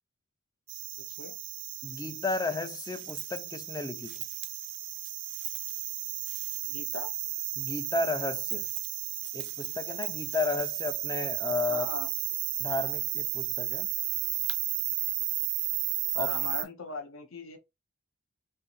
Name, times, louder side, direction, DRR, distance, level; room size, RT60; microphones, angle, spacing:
sound 1, 0.7-16.6, right 13 dB, 55° right, 0.5 m, -34 dB
voice 1, 1.0-1.3 6.6-7.1 11.7-12.1 16.1-17.6, left 3 dB, 70° left, 0.7 m, -39 dB
voice 2, 1.8-4.1 7.6-8.7 9.3-11.9 12.6-13.9 16.2-16.3, left 3 dB, 15° left, 0.3 m, -33 dB
2.9 x 2.6 x 3.9 m
head